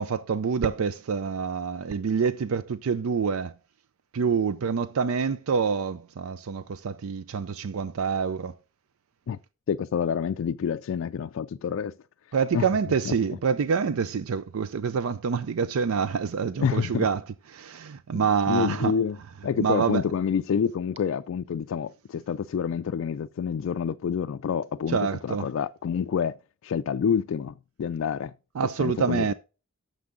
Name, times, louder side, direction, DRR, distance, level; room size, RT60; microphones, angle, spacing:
voice 1, 0.0-3.6 4.1-8.6 12.3-17.2 17.5-19.0 19.6-20.0 24.9-25.5 28.6-29.3, right 6 dB, 80° right, 0.4 m, -26 dB
voice 2, 9.7-11.9 12.5-12.7 13.1-13.2 16.6-17.1 18.1-19.2 19.4-26.4 26.6-28.3 28.8-29.3, left 7 dB, 65° left, 0.3 m, -28 dB
9.6 x 6.8 x 3.8 m
head